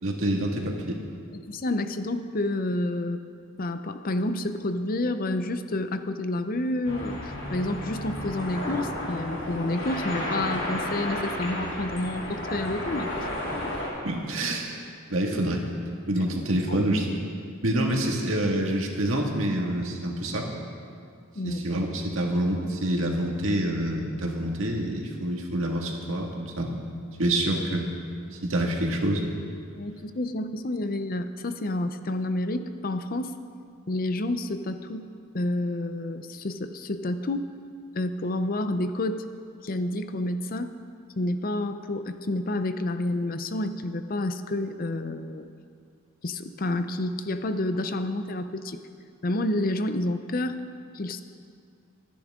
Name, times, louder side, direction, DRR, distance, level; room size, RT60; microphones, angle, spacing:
voice 1, 0.0-1.0 14.0-14.7 15.1-15.6 16.1-17.2 17.6-20.6 21.4-26.8 27.2-27.9 28.3-29.4, right 1 dB, 65° right, 0 dB, 1.9 m, -27 dB
voice 2, 1.3-3.2 3.6-13.1 16.7-16.8 17.7-17.8 21.4-21.6 29.7-33.4 33.9-35.0 35.3-37.5 37.9-39.2 39.6-40.7 41.2-45.5 46.2-48.8 49.2-50.6 50.9-51.2, left 1 dB, 40° left, 9 dB, 0.6 m, -29 dB
sound 1, 6.8-13.9, left 1 dB, 60° left, 3.3 m, -32 dB
25.5 x 10.0 x 3.7 m, 2.3 s
head